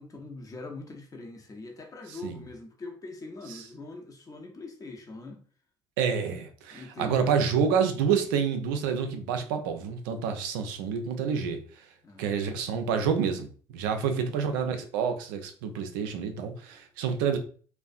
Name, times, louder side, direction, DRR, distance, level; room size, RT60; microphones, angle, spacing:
voice 1, 0.0-5.4 6.7-7.5 12.0-12.8 13.9-14.3, left 3 dB, 30° left, 0.7 m, -43 dB
voice 2, 2.1-2.4 3.5-3.6 6.0-11.9 12.2-17.4, right 6 dB, 80° right, 0.4 m, -28 dB
2.4 x 2.2 x 2.4 m
hypercardioid pair, 55°, 11 cm